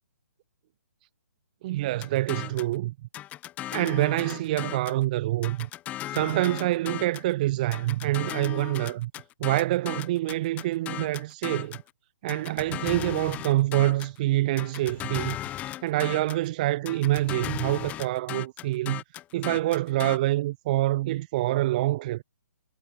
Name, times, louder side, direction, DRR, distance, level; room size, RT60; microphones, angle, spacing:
voice 1, 1.6-2.9 3.7-5.7 6.1-9.1 9.4-11.8 12.2-15.4 15.8-19.0 19.3-22.2, right 16 dB, 30° right, 0.4 m, -26 dB
sound 1, 2.0-2.8 3.1-5.0 5.4-7.3 7.7-11.9 12.3-14.2 14.6-16.5 16.9-20.2, left 14 dB, 15° left, 0.8 m, -37 dB
figure-of-eight pair, 140°, 9 cm